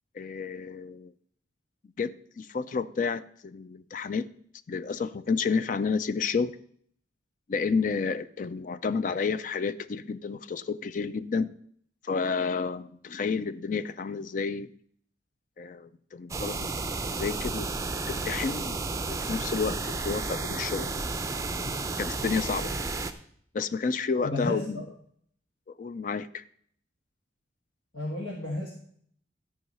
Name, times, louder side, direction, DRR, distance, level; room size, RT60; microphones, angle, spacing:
voice 1, 0.1-1.1 2.0-4.2 4.7-6.5 7.5-11.5 12.0-14.7 15.6-16.7 17.1-17.7 18.1-18.7 19.1-21.0 22.0-22.7 23.5-24.8 25.8-26.4, left 5 dB, 45° left, 14 dB, 0.4 m, -30 dB
sound 1, 16.3-23.1, right 3 dB, 15° right, 0.5 m, -32 dB
voice 2, 24.2-24.9 27.9-28.7, left 2 dB, 85° left, -3 dB, 1.8 m, -32 dB
12.5 x 4.7 x 5.4 m, 0.63 s
head